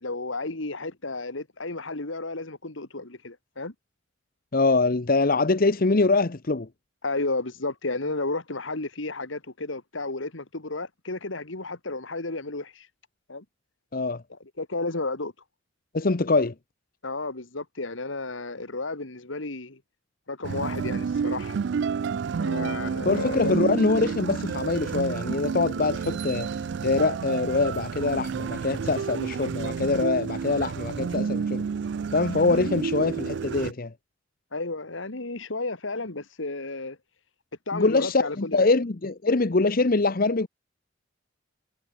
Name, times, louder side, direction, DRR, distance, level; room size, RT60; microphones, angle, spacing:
voice 1, 0.0-3.7 7.0-12.9 13.3-13.4 14.6-15.3 17.0-19.8 20.3-21.6 22.4-23.6 34.5-37.0 37.7-38.6, left 2 dB, 75° left, 2.2 m, -32 dB
voice 2, 4.5-6.7 13.9-14.2 15.9-16.5 23.0-26.5 26.8-31.6 32.1-33.9 37.7-40.5, left 3 dB, 45° left, 0.8 m, -24 dB
sound 1, 20.4-33.7, right 6 dB, 60° right, 0.3 m, -30 dB
head